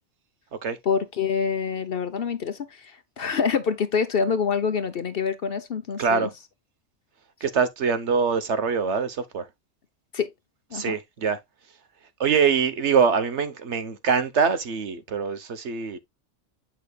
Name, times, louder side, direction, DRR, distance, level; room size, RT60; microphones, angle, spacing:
voice 1, 0.8-6.3 10.1-10.3 10.7-10.9, left 6 dB, 50° left, 0.9 m, -26 dB
voice 2, 6.0-6.3 7.4-9.5 10.7-11.4 12.2-16.0, right 6 dB, 65° right, 1.3 m, -24 dB
8.0 x 6.1 x 2.3 m
omnidirectional pair, 1.3 m